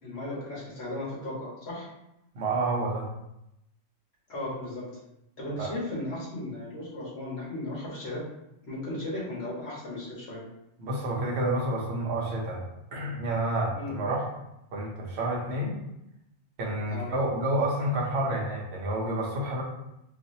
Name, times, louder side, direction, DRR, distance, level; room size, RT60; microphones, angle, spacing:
voice 1, 0.0-1.9 4.3-4.9 5.4-8.2 8.6-10.4 13.7-13.9 16.9-17.1, left 1 dB, 55° left, -6 dB, 1.5 m, -36 dB
voice 2, 2.3-3.1 5.6-5.7 10.8-12.6 12.9-14.3 14.7-15.8 16.6-19.6, right 1 dB, 60° right, -2 dB, 1.0 m, -29 dB
4.1 x 2.5 x 2.6 m, 0.86 s
omnidirectional pair, 1.3 m